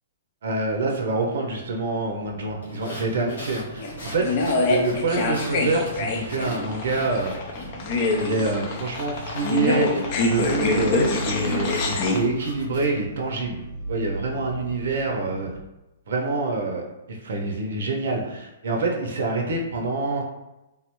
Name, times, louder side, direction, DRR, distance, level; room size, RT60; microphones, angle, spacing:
voice 1, 0.4-7.4 8.2-13.6 13.9-15.5 16.1-20.2, right 3 dB, 65° right, 0 dB, 0.6 m, -26 dB
sound 1, 2.1-15.6, right 2 dB, 15° right, 0.5 m, -40 dB
sound 2, 2.6-7.9 8.2-12.9, left 1 dB, 90° left, 1.3 m, -42 dB
sound 3, 3.8-12.2, left 2 dB, 40° left, 0.6 m, -25 dB
3.4 x 2.0 x 3.0 m, 0.96 s
hypercardioid pair, 140°, 0 cm